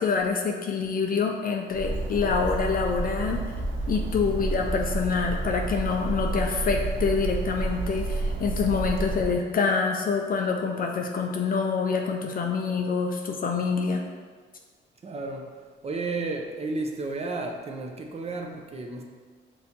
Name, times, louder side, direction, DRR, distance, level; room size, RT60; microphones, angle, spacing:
voice 1, 0.0-3.4 3.9-14.0, left 5 dB, 45° left, 2 dB, 0.5 m, -26 dB
Bird, 1.7-9.3, right 2 dB, 75° right, 0.8 m, -30 dB
voice 2, 15.0-19.1, right 3 dB, 30° right, 2 dB, 0.6 m, -33 dB
6.1 x 2.6 x 2.8 m, 1.5 s
cardioid pair, 90°, 20 cm